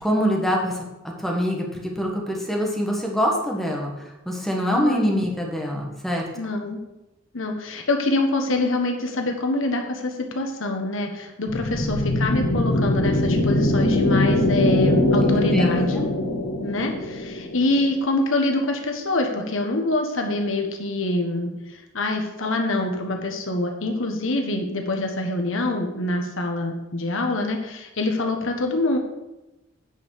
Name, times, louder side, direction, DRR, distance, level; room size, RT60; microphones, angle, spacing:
voice 1, 0.0-6.2 15.2-16.0, equal, ahead, -1 dB, 1.6 m, -25 dB
voice 2, 6.4-6.8 7.3-16.1 16.6-21.5 21.9-29.0, left 2 dB, 65° left, 3 dB, 1.4 m, -25 dB
sound 1, 11.5-18.0, left 1 dB, 85° left, 1.5 m, -22 dB
9.2 x 5.6 x 6.6 m, 1.0 s
head